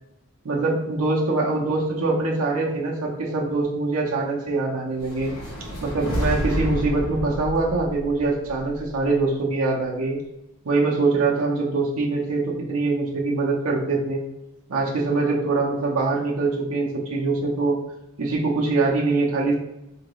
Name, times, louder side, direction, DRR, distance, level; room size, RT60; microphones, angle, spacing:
voice 1, 0.4-5.3 5.8-10.2 10.6-14.2 14.7-17.8 18.2-19.5, right 3 dB, 75° right, -3 dB, 0.7 m, -23 dB
sound 1, 4.9-9.2, equal, 80° left, 1.0 m, -30 dB
3.8 x 2.9 x 3.0 m, 0.88 s
head